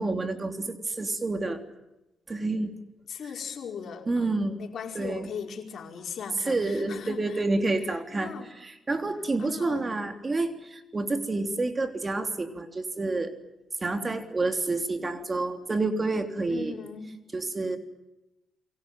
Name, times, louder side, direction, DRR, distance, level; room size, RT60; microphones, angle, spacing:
voice 1, 0.0-1.6 2.3-2.7 4.1-4.6 5.0-5.3 6.5-8.3 8.6-13.3 13.8-16.8 17.3-17.8, right 2 dB, 30° right, 7 dB, 3.5 m, -29 dB
voice 2, 3.1-7.4 7.9-8.5 9.4-9.9 16.5-17.1, left 7 dB, 65° left, 3 dB, 5.0 m, -39 dB
28.5 x 23.5 x 7.7 m, 0.98 s
cardioid pair, 80°, 0 cm